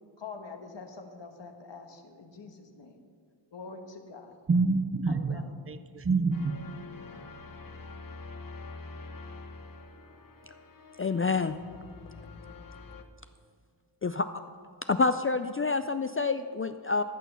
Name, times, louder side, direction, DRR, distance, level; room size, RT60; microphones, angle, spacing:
voice 1, 0.2-3.0 3.5-4.4 5.1-5.5, left 4 dB, 65° left, 5 dB, 1.3 m, -45 dB
voice 2, 4.5-6.6, right 3 dB, 30° right, 13 dB, 0.6 m, -27 dB
sound 1, 6.3-13.0, left 3 dB, 45° left, 1.1 m, -46 dB
voice 3, 11.0-11.5 14.0-14.3 14.9-17.0, left 4 dB, 30° left, 10 dB, 0.3 m, -27 dB
13.5 x 6.1 x 6.9 m, 2.1 s
wide cardioid pair, 60°, 46 cm